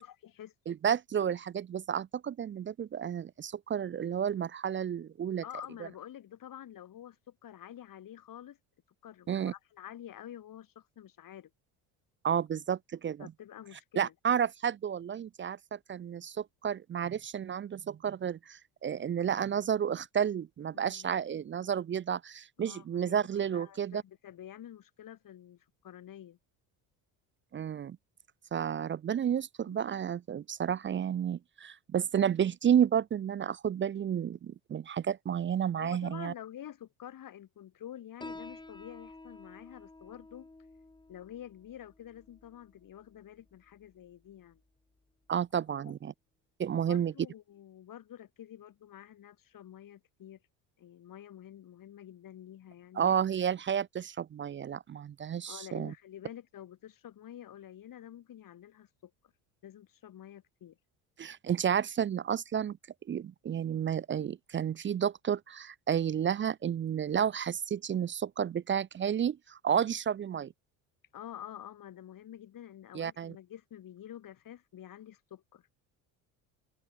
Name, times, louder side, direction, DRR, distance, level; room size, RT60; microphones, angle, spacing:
voice 1, 0.0-0.8 5.4-8.6 9.0-11.5 13.2-14.1 20.7-21.1 22.6-26.4 29.6-29.8 35.8-40.5 41.1-44.6 45.8-45.9 46.7-50.4 50.8-53.2 55.5-59.1 59.6-60.8 69.7-69.9 71.1-75.7, left 11 dB, 50° left, 3.1 m, -48 dB
voice 2, 0.7-5.4 9.3-9.5 12.2-13.3 14.0-24.0 27.5-28.0 28.5-36.3 45.3-46.1 46.6-47.1 53.0-55.9 61.2-62.8 63.1-70.5 72.9-73.3, right 8 dB, 30° right, 0.5 m, -31 dB
Piano, 38.2-45.3, left 2 dB, 10° left, 2.2 m, -52 dB
open air
supercardioid pair, 85°, 43 cm